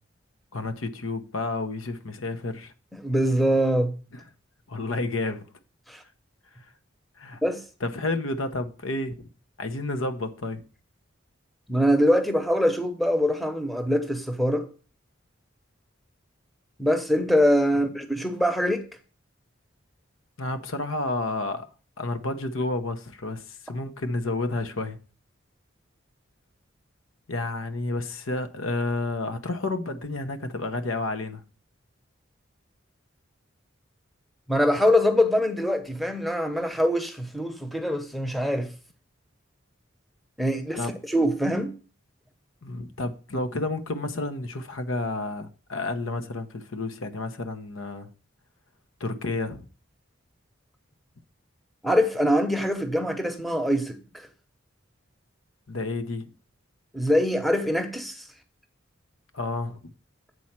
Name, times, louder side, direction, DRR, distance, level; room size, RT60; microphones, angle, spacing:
voice 1, 0.5-2.7 4.7-5.4 7.2-7.4 7.8-9.1 9.6-10.6 20.4-21.7 22.0-25.0 27.3-31.4 40.7-40.9 42.6-48.1 49.0-49.6 55.7-56.3 59.3-59.8, left 2 dB, 90° left, 0.9 m, -30 dB
voice 2, 3.0-3.9 5.9-6.0 7.4-7.6 11.7-14.7 16.8-18.9 34.5-38.7 40.4-41.7 51.8-54.3 56.9-58.2, equal, ahead, 0.8 m, -23 dB
8.0 x 4.3 x 5.9 m
head